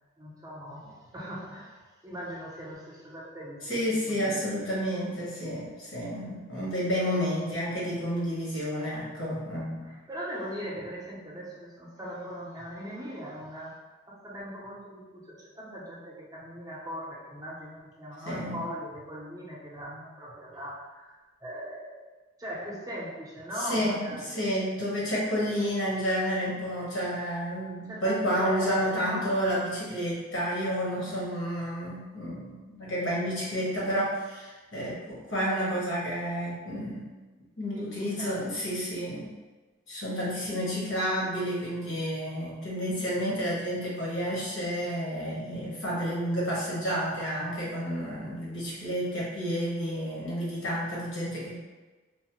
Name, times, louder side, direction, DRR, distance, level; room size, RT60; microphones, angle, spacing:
voice 1, 0.2-4.4 9.8-13.8 14.1-22.1 22.4-24.6 27.9-29.7 37.7-38.5 40.4-40.8, equal, 15° right, -5 dB, 0.5 m, -40 dB
voice 2, 3.7-9.9 18.3-18.6 23.6-37.1 37.6-39.3 39.9-51.6, equal, 80° left, -6 dB, 1.2 m, -30 dB
3.0 x 2.0 x 2.9 m, 1.2 s
head